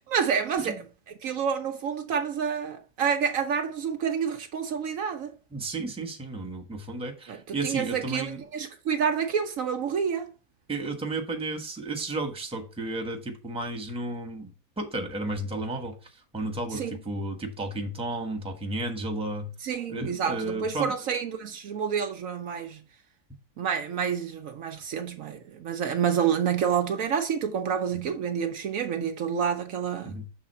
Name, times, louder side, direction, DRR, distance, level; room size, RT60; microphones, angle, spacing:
voice 1, 0.1-0.8 1.2-5.3 7.3-10.3 16.7-17.0 19.6-22.8 23.6-30.2, right 7 dB, 65° right, 1.0 m, -28 dB
voice 2, 5.5-8.4 10.7-16.0 16.3-19.5 19.9-20.9 30.0-30.2, right 2 dB, 5° right, 1.0 m, -33 dB
6.5 x 3.6 x 5.5 m
omnidirectional pair, 1.6 m